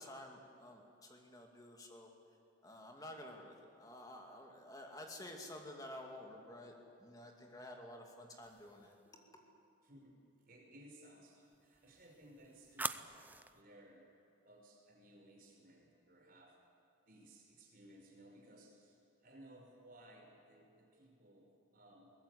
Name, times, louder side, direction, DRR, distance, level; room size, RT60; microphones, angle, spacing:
voice 1, 0.0-2.1 2.6-6.7 7.0-9.0, left 1 dB, 20° left, 2 dB, 2.5 m, -51 dB
sound 1, 8.4-9.1 11.5-13.6, right 3 dB, 10° right, 0.4 m, -46 dB
voice 2, 9.8-10.1 10.5-13.2 13.5-14.0 14.4-16.6 17.1-22.1, right 1 dB, 50° right, 0 dB, 5.2 m, -60 dB
22.0 x 19.0 x 8.3 m, 2.7 s
head